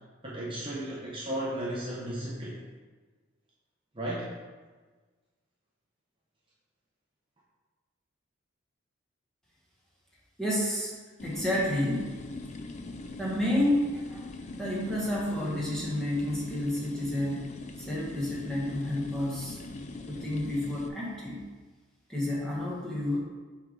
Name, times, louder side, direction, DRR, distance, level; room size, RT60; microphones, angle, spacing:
voice 1, 0.2-2.6 3.9-4.3, right 1 dB, 25° right, -6 dB, 0.8 m, -34 dB
voice 2, 10.4-10.9 11.2-12.3 13.2-19.6 20.1-21.5 22.1-23.2, left 1 dB, ahead, -6 dB, 1.4 m, -30 dB
sound 1, 11.2-20.9, left 2 dB, 35° left, 0.4 m, -42 dB
7.4 x 3.7 x 5.1 m, 1.4 s
head